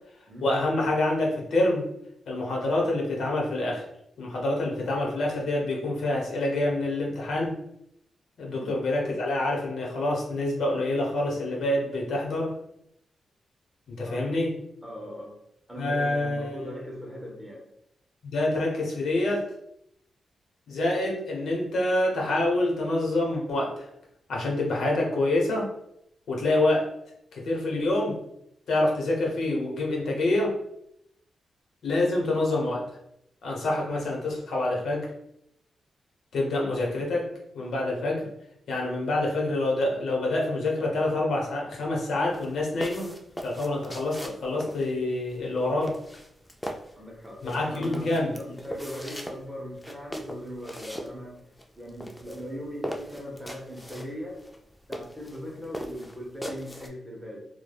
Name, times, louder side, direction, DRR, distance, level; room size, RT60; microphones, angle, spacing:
voice 1, 0.4-1.9 2.3-3.8 4.2-7.6 8.4-12.6 13.9-14.5 15.8-16.8 18.2-19.5 20.7-23.9 24.3-25.7 26.3-26.9 27.3-28.2 28.7-30.6 31.8-32.8 33.4-35.1 36.3-37.3 37.5-38.3 38.7-43.1 43.4-46.0 47.4-48.3, left 2 dB, 80° left, -2 dB, 0.8 m, -26 dB
voice 2, 14.8-15.4 15.7-17.7 47.0-54.4 54.9-57.5, equal, 10° right, -2 dB, 0.7 m, -39 dB
sound 1, 42.2-56.9, equal, 10° left, 0.3 m, -40 dB
3.2 x 2.2 x 2.2 m, 0.77 s
cardioid pair, 100°, 0 cm